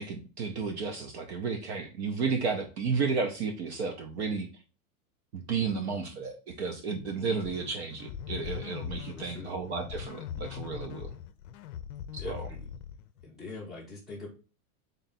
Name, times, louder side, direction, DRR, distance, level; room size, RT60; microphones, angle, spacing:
voice 1, 0.0-4.5 5.3-11.1 12.3-12.4, right 5 dB, 50° right, 3 dB, 0.6 m, -32 dB
voice 2, 5.6-6.0 9.1-9.5 12.1-12.7 13.2-14.3, left 3 dB, ahead, -8 dB, 0.6 m, -43 dB
sound 1, 7.4-13.3, left 9 dB, 70° left, 0.5 m, -41 dB
3.9 x 2.3 x 4.0 m, 0.35 s
supercardioid pair, 175°, 45 cm